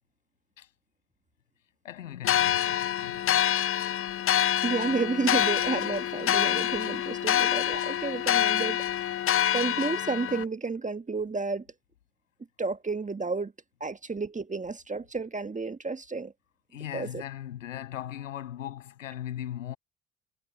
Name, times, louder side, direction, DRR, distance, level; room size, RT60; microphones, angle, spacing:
voice 1, 1.8-3.4 16.7-19.8, left 11 dB, 80° left, 7.2 m, -39 dB
sound 1, 2.2-10.4, left 11 dB, 35° left, 0.7 m, -26 dB
voice 2, 4.6-8.8 9.5-11.6 12.6-13.5 13.8-16.3 16.9-17.2, right 4 dB, 20° right, 1.7 m, -31 dB
figure-of-eight pair, 50°, 38 cm